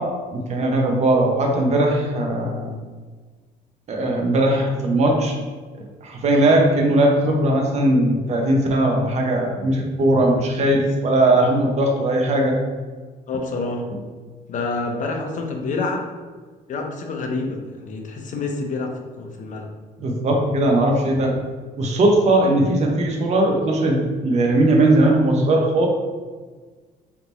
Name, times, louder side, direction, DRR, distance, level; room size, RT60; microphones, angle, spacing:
voice 1, 0.0-2.8 3.9-5.4 6.0-12.6 20.0-21.4 21.8-25.9, right 1 dB, 40° right, 1 dB, 0.8 m, -19 dB
voice 2, 13.3-13.8 14.5-16.0 16.7-19.7, left 3 dB, 50° left, 3 dB, 0.7 m, -27 dB
3.5 x 2.9 x 4.0 m, 1.4 s
cardioid pair, 110°, 17 cm